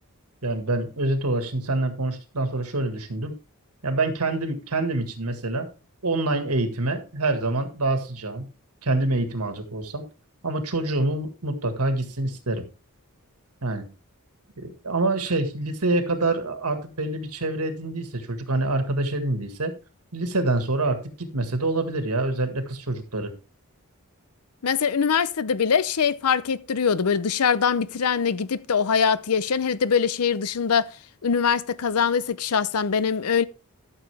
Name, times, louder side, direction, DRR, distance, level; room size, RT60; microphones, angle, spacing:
voice 1, 0.4-3.3 3.8-5.7 6.0-8.5 8.8-10.1 10.4-12.6 13.6-13.9 14.6-19.7 20.1-23.3, right 2 dB, 80° right, 1.8 m, -26 dB
voice 2, 24.6-30.9 31.2-33.4, left 6 dB, 75° left, 0.6 m, -23 dB
13.0 x 6.8 x 3.5 m
head